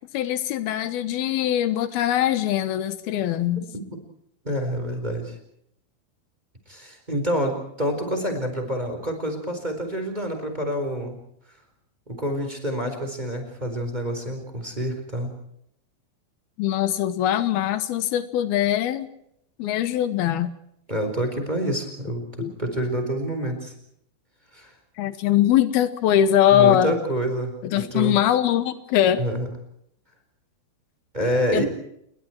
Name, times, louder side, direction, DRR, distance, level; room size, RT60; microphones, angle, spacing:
voice 1, 0.1-3.6 16.6-19.1 19.6-20.5 22.4-22.5 25.0-26.9 27.6-29.2 31.5-31.6, left 11 dB, 85° left, 12 dB, 3.1 m, -22 dB
voice 2, 4.4-5.3 6.7-11.2 12.1-15.3 20.9-22.2 22.6-23.7 24.5-24.7 26.5-28.2 29.2-29.5 31.1-31.6, equal, 10° right, 5 dB, 4.2 m, -27 dB
29.5 x 22.0 x 4.6 m, 0.73 s
omnidirectional pair, 4.3 m